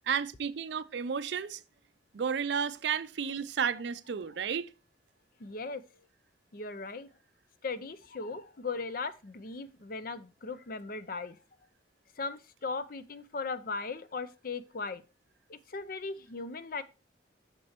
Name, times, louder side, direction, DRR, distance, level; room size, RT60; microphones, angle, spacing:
voice 1, 0.1-1.6 2.1-4.7, right 7 dB, 65° right, 0.4 m, -32 dB
voice 2, 5.4-5.8 6.5-7.1 7.6-11.4 12.2-15.0 15.5-16.8, left 4 dB, 45° left, 0.5 m, -38 dB
6.4 x 6.0 x 4.3 m
head